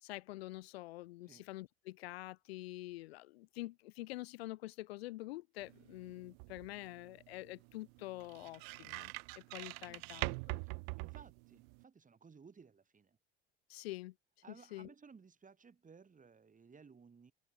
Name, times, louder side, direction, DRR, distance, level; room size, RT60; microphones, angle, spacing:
voice 1, 0.0-10.6 13.7-14.1 14.7-14.9, left 18 dB, 80° left, 1.4 m, -47 dB
sound 1, 5.6-11.8, right 40 dB or more, 70° right, 0.8 m, -45 dB
voice 2, 11.0-13.2 14.4-17.3, right 5 dB, 25° right, 2.6 m, -59 dB
open air
hypercardioid pair, 70°, 31 cm